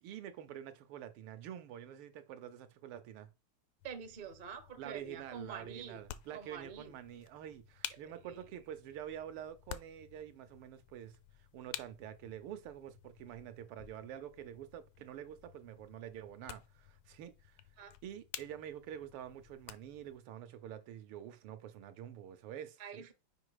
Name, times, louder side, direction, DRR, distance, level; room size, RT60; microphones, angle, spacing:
voice 1, 0.0-3.3 4.8-11.2 11.5-17.6 18.0-23.0, right 10 dB, 85° right, 1.7 m, -47 dB
sound 1, 3.8-20.2, left 12 dB, 85° left, 1.5 m, -52 dB
voice 2, 3.8-6.0 6.3-6.9 8.2-8.4 17.8-17.9 22.8-23.1, right 6 dB, 50° right, 0.5 m, -47 dB
5.9 x 4.9 x 4.8 m
omnidirectional pair, 2.3 m